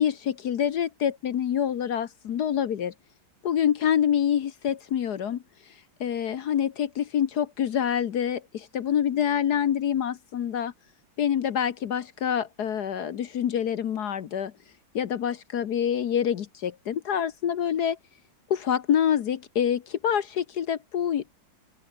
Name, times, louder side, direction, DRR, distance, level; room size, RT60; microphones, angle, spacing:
voice 1, 0.0-2.9 3.4-5.4 6.0-10.7 11.2-14.5 14.9-18.0 18.5-21.3, left 9 dB, 60° left, 1.4 m, -26 dB
open air
omnidirectional pair, 2.1 m